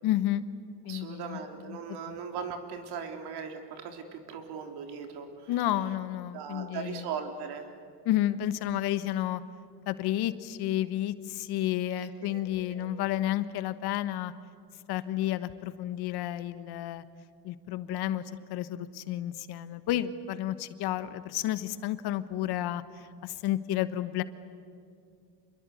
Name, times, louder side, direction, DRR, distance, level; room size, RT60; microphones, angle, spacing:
voice 1, 0.0-0.4 0.8-2.2 5.5-7.1 8.0-9.4 9.9-14.3 14.9-17.0 17.4-18.2 18.5-24.2, left 13 dB, 60° left, 13 dB, 1.4 m, -31 dB
voice 2, 0.9-5.5 6.3-7.7 11.9-12.9, right 6 dB, 60° right, 5 dB, 3.7 m, -39 dB
27.0 x 22.5 x 8.4 m, 2.4 s
supercardioid pair, 115°, 43 cm